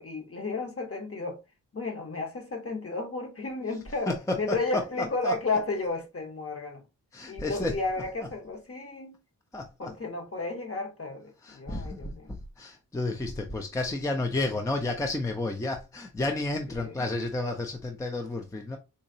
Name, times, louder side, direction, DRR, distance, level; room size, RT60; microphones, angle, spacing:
voice 1, 0.0-1.4 1.7-6.8 7.3-9.2 9.8-12.3 16.8-17.0, left 3 dB, 40° left, 1.0 m, -33 dB
voice 2, 4.1-4.8 5.2-5.3 7.1-7.7 9.5-9.9 11.4-18.8, left 2 dB, 10° left, 0.4 m, -31 dB
4.0 x 2.8 x 2.7 m
wide cardioid pair, 110°, 36 cm